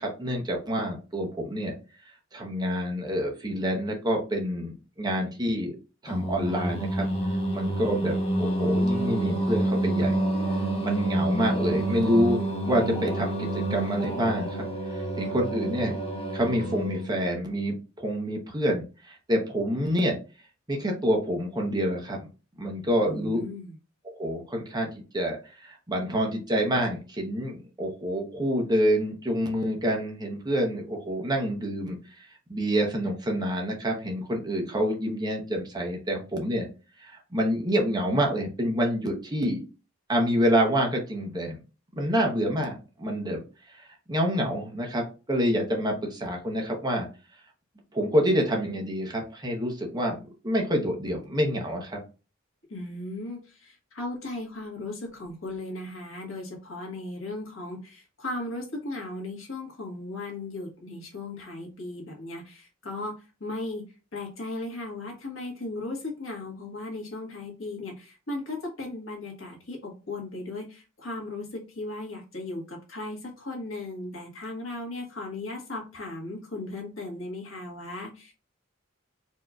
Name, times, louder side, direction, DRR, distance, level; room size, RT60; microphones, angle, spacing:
voice 1, 0.0-1.7 2.3-5.7 6.0-7.1 7.5-10.1 10.8-12.4 12.6-14.7 14.9-16.0 16.3-20.2 20.7-22.2 22.6-23.4 24.0-25.4 25.6-32.0 32.5-36.7 37.0-39.6 40.1-41.6 42.0-43.4 43.8-47.1 47.9-50.2 50.4-52.0, equal, 20° right, 1 dB, 0.9 m, -27 dB
Singing, 6.1-17.2, right 1 dB, 30° left, 1.0 m, -28 dB
voice 2, 23.0-23.7 52.7-63.1 63.4-63.8 64.1-78.3, left 2 dB, 80° left, -1 dB, 1.6 m, -36 dB
4.4 x 2.8 x 2.4 m, 0.32 s
head